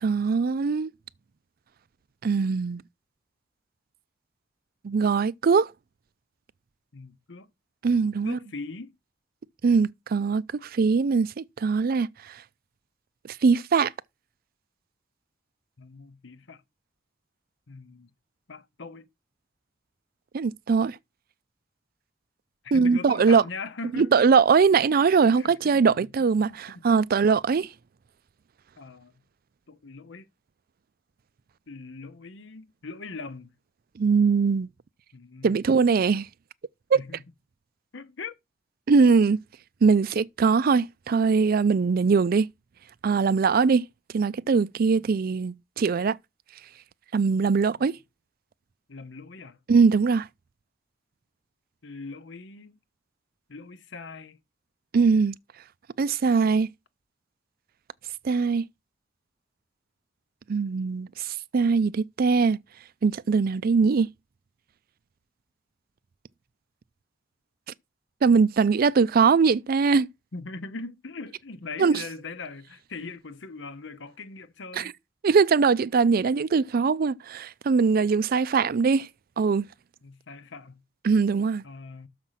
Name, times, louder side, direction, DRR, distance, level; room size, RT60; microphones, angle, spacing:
voice 1, 0.0-0.9 2.2-2.8 4.8-5.7 7.8-8.4 9.6-12.1 13.4-13.9 20.3-21.0 22.7-23.4 24.0-27.7 34.0-34.7 35.4-36.3 36.9-37.0 38.9-39.4 39.8-42.5 43.0-43.9 44.1-46.2 47.1-48.0 49.7-50.3 54.9-55.3 56.0-56.7 58.2-58.6 60.5-61.3 61.5-62.6 63.0-64.1 68.2-70.1 71.8-72.0 74.8-74.9 75.2-79.1 79.4-79.7 81.0-81.6, right 5 dB, 50° right, 0.4 m, -21 dB
voice 2, 6.9-7.5 8.2-9.0 15.8-16.6 17.7-18.1 18.5-19.1 22.6-24.3 25.3-26.1 26.4-27.0 28.8-29.1 29.7-30.3 31.7-33.5 35.1-35.6 36.9-37.2 37.9-38.4 47.8-47.9 48.9-49.6 51.8-52.8 53.5-54.4 70.3-75.0 80.0-80.8 81.6-82.1, left 3 dB, 75° left, 0.9 m, -41 dB
6.6 x 6.0 x 5.7 m
head